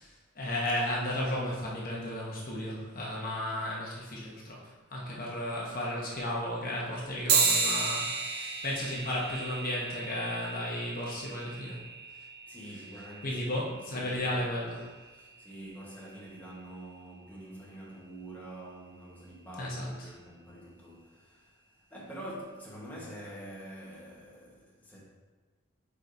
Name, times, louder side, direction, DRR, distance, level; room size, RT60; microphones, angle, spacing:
voice 1, 0.0-11.8 13.2-14.9 19.6-19.9, left 1 dB, 45° left, 1.0 m, -34 dB
sound 1, 7.3-17.1, right 4 dB, 50° right, 0.7 m, -34 dB
voice 2, 12.5-14.5 15.1-21.5 21.9-25.0, right 1 dB, 10° left, 1.3 m, -46 dB
8.9 x 4.8 x 2.7 m
head